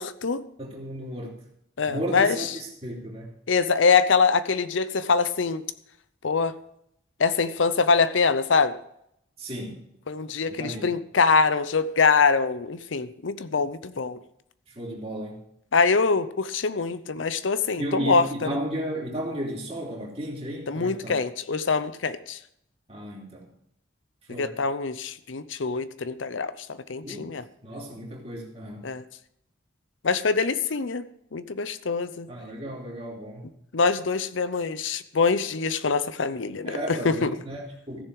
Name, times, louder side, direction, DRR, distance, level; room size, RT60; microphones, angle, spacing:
voice 1, 0.0-0.4 1.8-2.5 3.5-5.6 6.2-6.5 7.2-8.8 10.1-14.2 15.7-18.6 20.7-22.4 24.4-27.4 28.8-29.0 30.0-31.0 31.3-32.3 33.7-37.4, left 4 dB, 85° left, 14 dB, 0.7 m, -24 dB
voice 2, 0.6-1.4 1.9-3.3 9.4-9.8 10.6-11.0 14.7-15.4 17.8-21.1 22.9-23.5 24.3-24.5 27.0-27.3 27.6-28.9 32.3-33.5 36.7-38.0, equal, 30° right, -2 dB, 3.0 m, -34 dB
15.0 x 6.9 x 4.7 m, 0.74 s
head